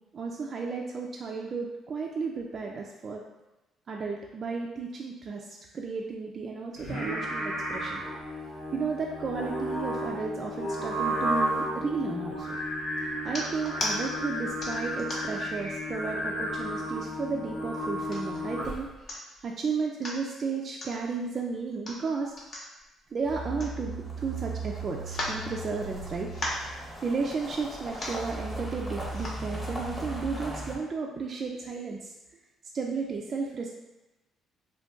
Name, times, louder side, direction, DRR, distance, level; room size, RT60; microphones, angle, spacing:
voice 1, 0.1-3.2 3.9-8.0 8.7-12.6 13.2-22.3 23.1-26.3 27.0-32.1 32.7-33.7, right 4 dB, 45° right, -1 dB, 0.3 m, -33 dB
Singing, 6.8-18.9, equal, 80° left, 1.2 m, -33 dB
sound 1, 13.2-13.9 14.6-15.4 16.0-16.1 16.5-17.1 17.7-18.4 18.8-18.9 19.1-19.5 19.8-20.2 20.8-20.9 21.7-24.2 24.5-24.6 25.0-26.0 26.3-26.7 27.5-27.6 27.9-28.3 29.1-29.4 30.0-30.1, left 1 dB, 45° left, 0.8 m, -36 dB
sound 2, 23.3-30.8, right 2 dB, ahead, 0.8 m, -37 dB
2.5 x 2.2 x 3.6 m, 1.0 s
cardioid pair, 85°, 0 cm